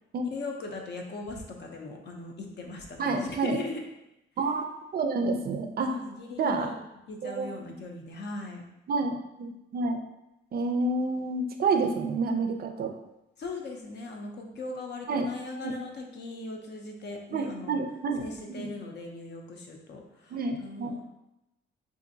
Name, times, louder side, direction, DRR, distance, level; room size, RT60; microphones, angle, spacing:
voice 1, 0.3-3.8 5.9-6.8 7.1-8.6 13.4-17.8 18.2-21.0, left 3 dB, 55° left, 2 dB, 0.6 m, -39 dB
voice 2, 3.0-3.6 4.4-5.9 6.4-6.7 7.2-7.5 8.9-10.0 10.5-12.9 15.1-15.3 15.6-15.7 17.3-18.2 18.5-18.7 20.3-21.0, right 3 dB, 50° right, 5 dB, 0.4 m, -29 dB
3.7 x 2.5 x 2.6 m, 0.90 s
cardioid pair, 130°, 21 cm